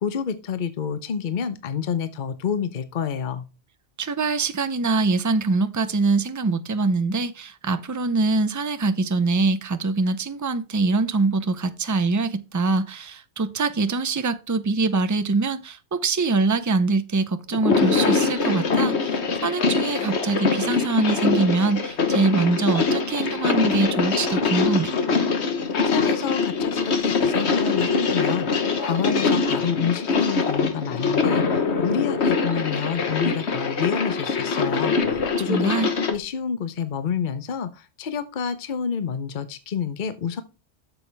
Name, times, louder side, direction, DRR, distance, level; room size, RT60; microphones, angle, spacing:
voice 1, 0.0-3.4 25.6-35.8 36.1-40.4, left 7 dB, 50° left, 0.8 m, -28 dB
voice 2, 4.0-24.9 35.5-35.9, right 3 dB, 25° right, 0.4 m, -23 dB
sound 1, 17.5-36.2, left 4 dB, 80° left, 1.4 m, -23 dB
8.4 x 6.9 x 3.4 m
omnidirectional pair, 1.1 m